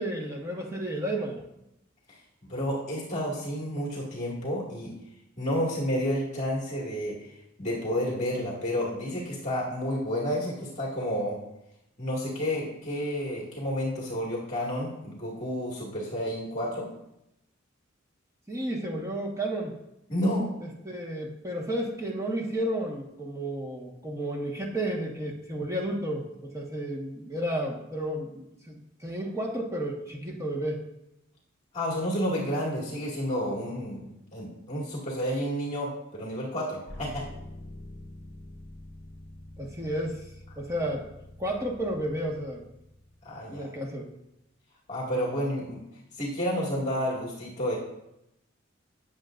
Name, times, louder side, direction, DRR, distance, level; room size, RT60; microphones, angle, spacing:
voice 1, 0.0-1.4 18.5-19.7 20.6-30.8 39.6-40.2 40.6-41.1 41.4-42.6 43.5-44.1, right 1 dB, 15° right, -1 dB, 1.5 m, -32 dB
voice 2, 2.4-4.9 5.4-7.3 7.6-11.4 12.0-16.9 20.1-20.5 31.7-37.2 43.2-43.7 44.9-45.8 46.2-47.8, equal, 35° left, -5 dB, 2.2 m, -30 dB
sound 1, 36.9-43.8, left 1 dB, 50° left, 4.5 m, -46 dB
19.5 x 7.3 x 2.6 m, 0.86 s
head